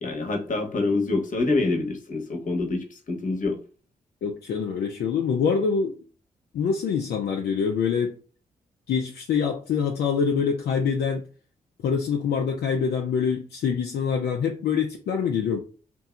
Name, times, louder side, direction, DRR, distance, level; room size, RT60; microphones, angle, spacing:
voice 1, 0.0-3.6, left 3 dB, 50° left, 1.0 m, -26 dB
voice 2, 4.2-6.0 6.5-8.1 8.9-11.2 11.8-15.6, left 6 dB, 70° left, 0.5 m, -25 dB
2.8 x 2.6 x 2.4 m
supercardioid pair, 40°, 17 cm